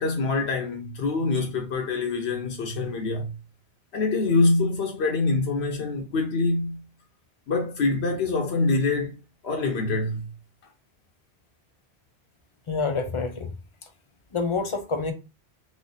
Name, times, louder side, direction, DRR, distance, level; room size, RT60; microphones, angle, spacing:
voice 1, 0.0-3.3 3.9-6.8 7.5-9.2 9.4-10.3, left 3 dB, 80° left, 1.0 m, -25 dB
voice 2, 12.7-13.5 14.3-15.1, left 4 dB, 45° left, 0.4 m, -27 dB
3.1 x 2.0 x 3.9 m
omnidirectional pair, 1.1 m